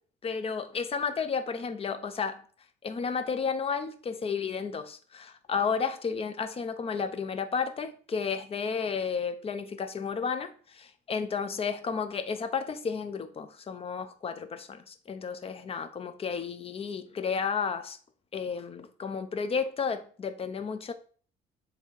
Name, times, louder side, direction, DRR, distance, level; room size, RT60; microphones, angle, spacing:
voice 1, 0.2-2.4 2.8-18.0 18.3-20.9, left 6 dB, 35° left, 0.9 m, -32 dB
8.0 x 3.3 x 4.8 m
cardioid pair, 110°, 17 cm